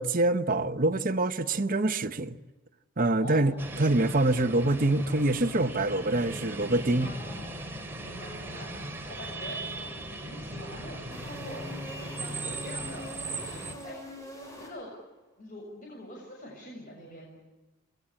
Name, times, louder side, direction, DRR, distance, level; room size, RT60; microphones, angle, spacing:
voice 1, 0.0-2.4 3.0-7.1, right 2 dB, 45° right, 1.0 m, -25 dB
sound 1, 3.6-13.7, right 2 dB, 10° right, 3.5 m, -38 dB
voice 2, 7.0-7.6 8.0-14.3 14.6-14.9 15.4-17.5, left 1 dB, 40° left, 7.0 m, -45 dB
sound 2, 11.1-15.2, equal, 15° left, 7.7 m, -44 dB
28.0 x 21.5 x 8.6 m
head